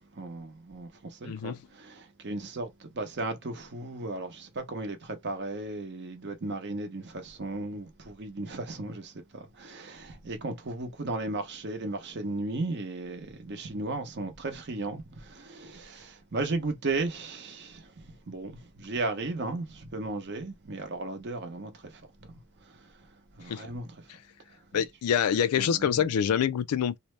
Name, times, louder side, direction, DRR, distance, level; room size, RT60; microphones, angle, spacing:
voice 1, 0.0-24.0 25.5-26.1, right 2 dB, 50° right, 0.7 m, -36 dB
voice 2, 1.3-1.6 23.5-23.7 24.7-27.0, left 8 dB, 85° left, 0.3 m, -26 dB
2.6 x 2.0 x 3.2 m
head